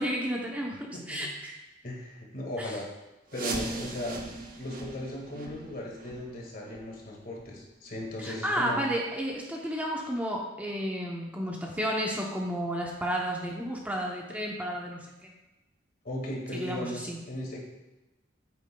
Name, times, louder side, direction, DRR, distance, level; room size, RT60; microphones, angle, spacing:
voice 1, 0.0-1.5 2.6-2.7 8.2-15.3 16.5-17.2, equal, 10° right, -1 dB, 0.7 m, -32 dB
voice 2, 0.9-1.3 1.8-2.8 3.3-8.8 16.0-17.6, left 1 dB, 50° left, -1 dB, 1.9 m, -37 dB
sound 1, 3.3-8.9 9.2-9.3 9.9-10.0 10.6-10.7 11.2-11.3, right 2 dB, 50° right, 1.0 m, -40 dB
9.0 x 8.7 x 2.3 m, 1.0 s
head